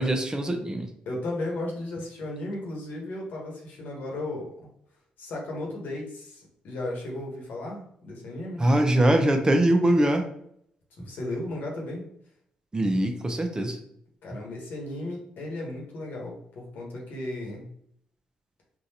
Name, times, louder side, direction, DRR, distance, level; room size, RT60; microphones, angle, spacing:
voice 1, 0.0-0.9 8.6-10.3 12.7-13.8, right 1 dB, 20° right, 5 dB, 0.7 m, -22 dB
voice 2, 1.0-4.7 5.2-8.6 10.9-12.0 14.2-17.7, left 1 dB, 70° left, -2 dB, 1.2 m, -35 dB
3.8 x 2.5 x 2.8 m, 0.69 s
supercardioid pair, 55°, 3 cm